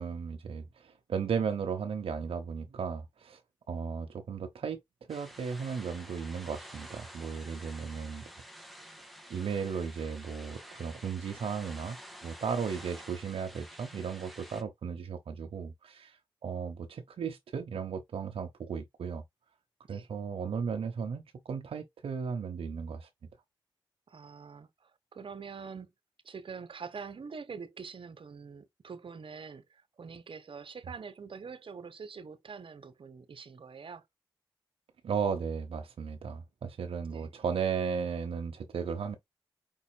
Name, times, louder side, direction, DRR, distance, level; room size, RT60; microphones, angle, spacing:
voice 1, 0.0-3.4 3.7-4.8 5.1-8.3 9.3-19.2 19.9-23.1 35.0-39.2, right 6 dB, 85° right, 0.8 m, -35 dB
sound 1, 5.1-14.6, equal, ahead, 1.9 m, -49 dB
voice 2, 24.1-25.9 26.2-34.1 37.0-37.3, right 5 dB, 65° right, 1.1 m, -45 dB
5.5 x 4.1 x 2.3 m
cardioid pair, 45°, 9 cm